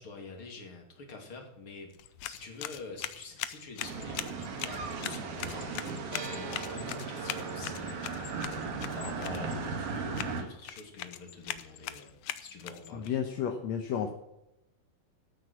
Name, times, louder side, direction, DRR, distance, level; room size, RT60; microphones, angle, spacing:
voice 1, 0.0-1.9 2.2-12.1 12.4-13.1, left 4 dB, 40° left, 2 dB, 3.2 m, -46 dB
sound 1, 1.9-13.1, left 13 dB, 85° left, 1.5 m, -41 dB
sound 2, 3.8-10.4, right 4 dB, 80° right, 4.1 m, -37 dB
voice 2, 12.9-14.1, left 8 dB, 65° left, 4 dB, 1.9 m, -32 dB
14.0 x 8.9 x 6.2 m, 0.88 s
omnidirectional pair, 4.1 m